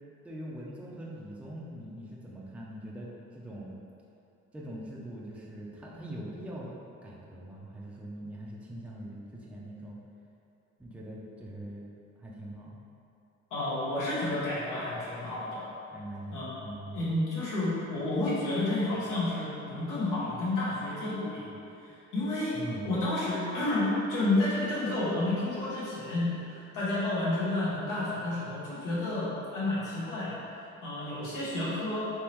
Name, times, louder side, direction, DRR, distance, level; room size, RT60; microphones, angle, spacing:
voice 1, 0.2-3.7 4.5-6.7 7.0-10.0 10.8-11.8 12.2-12.8 15.9-17.0 21.9-22.0 22.5-22.9, right 1 dB, 5° right, -5 dB, 0.5 m, -42 dB
voice 2, 13.5-15.6 16.3-16.6 16.9-21.5 22.1-22.6 22.8-30.3 30.8-32.1, left 2 dB, 85° left, -9 dB, 1.1 m, -30 dB
3.5 x 3.0 x 2.9 m, 2.8 s
cardioid pair, 90°, 30 cm